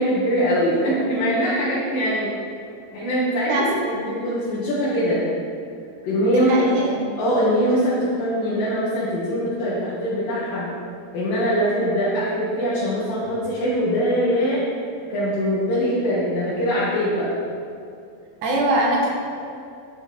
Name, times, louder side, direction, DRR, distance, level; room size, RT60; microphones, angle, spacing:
voice 1, 0.0-2.3 2.9-3.7 4.0-5.2 6.0-6.7 7.2-10.7 11.1-14.6 15.1-17.3, equal, 65° left, -10 dB, 3.6 m, -22 dB
voice 2, 3.5-4.1 6.3-7.1 18.4-19.1, right 1 dB, 60° right, -2 dB, 2.8 m, -22 dB
10.5 x 9.1 x 4.6 m, 2.5 s
omnidirectional pair, 4.2 m